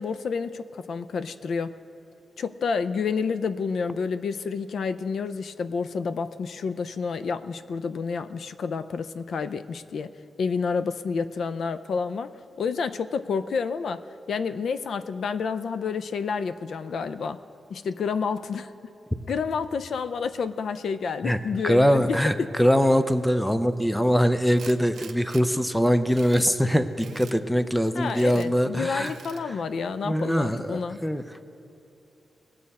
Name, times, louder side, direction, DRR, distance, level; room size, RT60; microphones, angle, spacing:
voice 1, 0.0-1.7 2.4-10.1 10.4-12.3 12.6-17.4 17.7-18.9 19.3-22.2 28.0-31.0, left 5 dB, 60° left, 11 dB, 0.4 m, -29 dB
voice 2, 21.2-29.1 29.5-29.6 30.0-31.2, equal, 5° left, 10 dB, 0.4 m, -23 dB
Tools, 24.6-25.4 25.9-26.5 27.0-27.4 28.0-28.5 29.0-29.4, right 7 dB, 65° right, 0.5 m, -46 dB
20.5 x 7.7 x 4.2 m, 2.8 s
wide cardioid pair, 175°, 0 cm